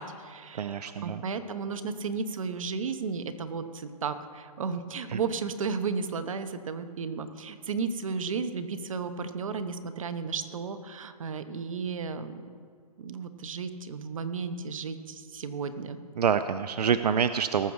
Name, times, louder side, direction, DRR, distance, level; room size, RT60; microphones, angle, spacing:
voice 1, 0.0-12.4 13.0-16.0, right 5 dB, 55° right, 10 dB, 1.0 m, -34 dB
voice 2, 0.6-1.2 5.1-5.2 16.2-17.7, right 7 dB, 85° right, 11 dB, 0.6 m, -26 dB
19.0 x 7.2 x 4.8 m, 2.1 s
hypercardioid pair, 170°, 20 cm